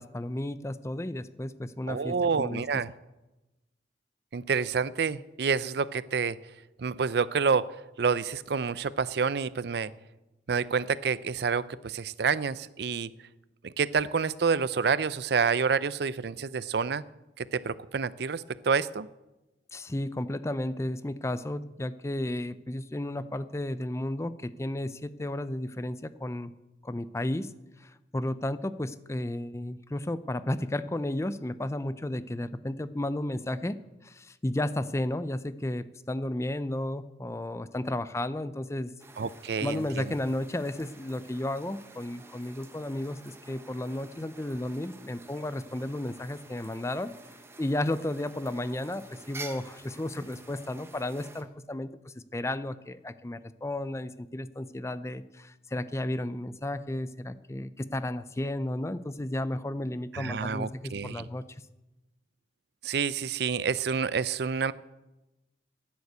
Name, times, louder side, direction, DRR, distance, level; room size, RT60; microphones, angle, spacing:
voice 1, 0.0-2.6 19.7-26.5 26.8-27.5 27.8-38.9 39.6-47.1 47.6-61.4, left 1 dB, 15° left, 14 dB, 0.5 m, -33 dB
voice 2, 1.9-2.9 4.3-6.4 6.8-7.7 8.0-9.9 10.5-13.1 13.6-17.0 17.4-19.1 39.2-40.1 60.1-61.3 62.8-64.7, right 5 dB, 60° right, 17 dB, 0.5 m, -28 dB
sound 1, 39.0-51.4, right 3 dB, 15° right, 0.9 m, -49 dB
11.0 x 9.6 x 8.1 m, 1.0 s
head